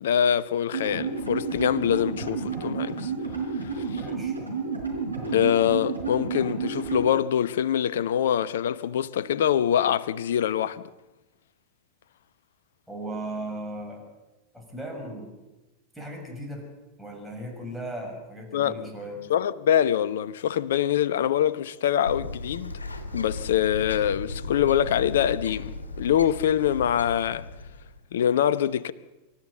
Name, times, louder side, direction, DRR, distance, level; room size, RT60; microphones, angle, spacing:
voice 1, 0.0-3.1 3.6-3.8 5.3-10.8 18.5-18.8 19.3-22.8 23.1-27.5 28.1-28.9, left 10 dB, 60° left, 0.8 m, -24 dB
sound 1, 0.7-7.1, right 4 dB, 80° right, 4.6 m, -31 dB
voice 2, 3.9-4.4 12.9-14.1 14.5-15.3 15.9-16.7 17.0-19.2, right 1 dB, ahead, 6.2 m, -37 dB
Bird, 22.1-28.0, left 2 dB, 75° left, 2.4 m, -36 dB
26.0 x 13.0 x 7.8 m
figure-of-eight pair, 90°, 0 cm